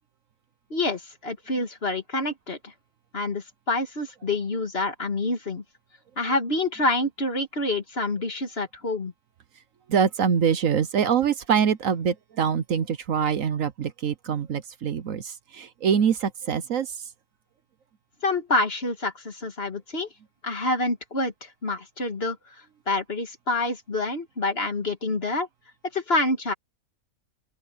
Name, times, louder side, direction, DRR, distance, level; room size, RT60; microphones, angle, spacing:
voice 1, 0.7-2.7 3.1-5.6 6.2-9.1 18.2-20.1 20.4-22.4 22.9-25.5 25.9-26.5, left 2 dB, 40° left, 2.4 m, -27 dB
voice 2, 9.9-16.9, right 7 dB, 65° right, 1.2 m, -24 dB
open air
omnidirectional pair, 1.6 m